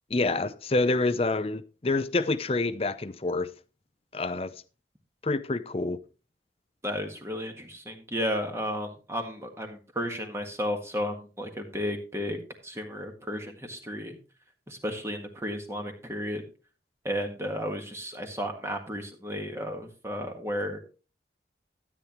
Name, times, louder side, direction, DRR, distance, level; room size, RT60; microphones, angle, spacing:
voice 1, 0.1-3.5 4.1-4.5 5.2-6.0, left 2 dB, 35° left, 0.6 m, -27 dB
voice 2, 6.8-14.2 14.7-16.4 17.0-20.8, equal, 15° right, 1.6 m, -33 dB
13.0 x 8.7 x 3.1 m
head